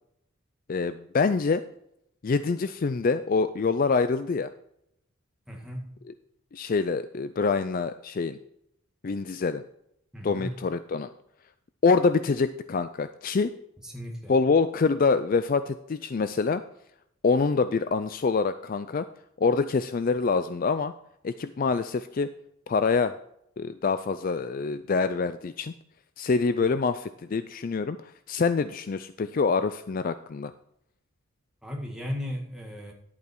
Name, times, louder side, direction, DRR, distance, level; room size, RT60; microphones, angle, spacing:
voice 1, 0.7-1.6 2.2-4.5 6.5-8.4 9.0-9.6 10.2-11.1 11.8-13.5 14.3-16.6 17.2-19.1 19.4-20.9 21.2-22.3 22.7-23.1 23.6-25.7 26.2-30.5, left 4 dB, 40° left, 12 dB, 0.4 m, -25 dB
voice 2, 5.5-5.9 10.1-10.6 13.8-14.3 31.6-32.9, left 1 dB, 5° right, 0 dB, 1.8 m, -35 dB
11.0 x 8.4 x 4.5 m, 0.76 s
head